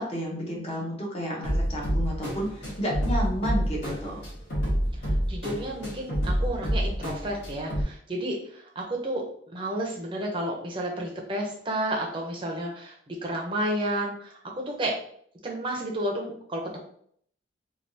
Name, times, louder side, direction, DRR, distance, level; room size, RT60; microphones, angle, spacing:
voice 1, 0.0-4.3, equal, 30° left, -2 dB, 0.8 m, -31 dB
sound 1, 1.4-7.8, equal, 55° left, 1.4 m, -28 dB
voice 2, 5.0-15.0 15.4-16.8, right 1 dB, 25° right, 0 dB, 0.5 m, -31 dB
3.3 x 2.3 x 2.6 m, 0.63 s
head